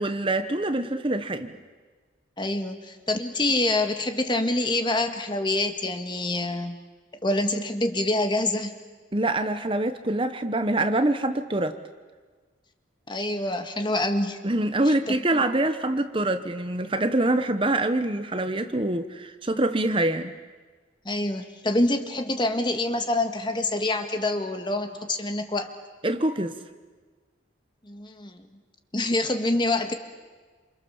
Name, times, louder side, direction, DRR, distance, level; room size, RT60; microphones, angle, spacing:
voice 1, 0.0-1.6 9.1-11.8 14.4-20.3 26.0-26.6, right 1 dB, 25° right, 9 dB, 1.1 m, -25 dB
voice 2, 2.4-6.8 7.2-8.8 13.1-14.4 14.9-15.4 21.1-25.7 27.8-28.5 28.9-29.9, left 2 dB, 25° left, 7 dB, 1.8 m, -26 dB
28.5 x 27.5 x 7.2 m, 1.4 s
head